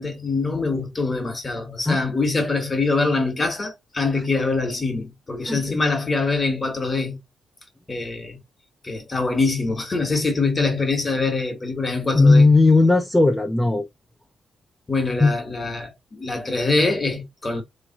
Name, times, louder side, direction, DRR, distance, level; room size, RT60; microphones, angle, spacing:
voice 1, 0.0-7.2 7.9-8.4 8.8-12.5 14.9-17.6, left 3 dB, 25° left, 1.3 m, -24 dB
voice 2, 12.2-13.9 15.2-15.3, left 3 dB, 10° left, 0.6 m, -16 dB
3.5 x 3.2 x 4.1 m
cardioid pair, 120°, 0 cm